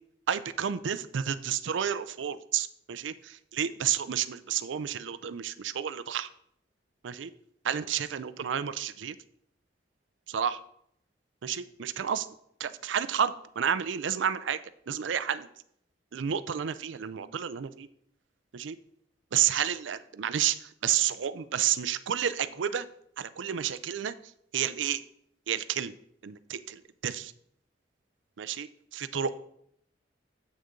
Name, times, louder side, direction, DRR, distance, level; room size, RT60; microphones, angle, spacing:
voice 1, 0.3-3.1 3.5-6.3 7.0-7.3 7.6-9.2 10.3-10.6 11.4-12.3 12.6-14.6 14.9-15.5 16.1-17.9 18.5-18.8 19.3-22.9 23.2-24.1 24.5-25.0 25.5-25.9 26.2-27.3 28.4-29.4, right 9 dB, 85° right, 14 dB, 0.4 m, -30 dB
8.2 x 6.5 x 3.7 m, 0.71 s
head